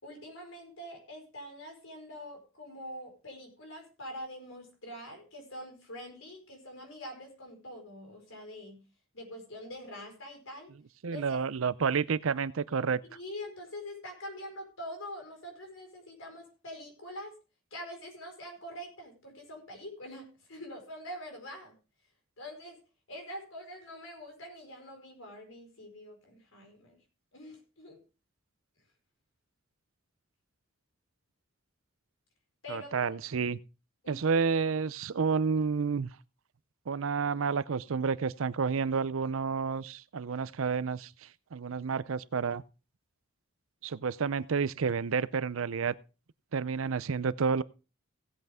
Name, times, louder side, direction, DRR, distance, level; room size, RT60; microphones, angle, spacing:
voice 1, 0.0-8.8 9.1-10.7 11.1-11.4 13.1-17.3 17.7-21.7 22.4-22.8 23.1-27.0 27.3-28.0 32.6-32.9 34.0-34.2, left 1 dB, 75° left, 4.8 m, -45 dB
voice 2, 11.0-13.0 32.7-33.6 34.1-36.1 36.9-42.6 43.8-45.9 46.5-47.6, right 5 dB, 80° right, 0.5 m, -30 dB
17.0 x 8.0 x 3.6 m
head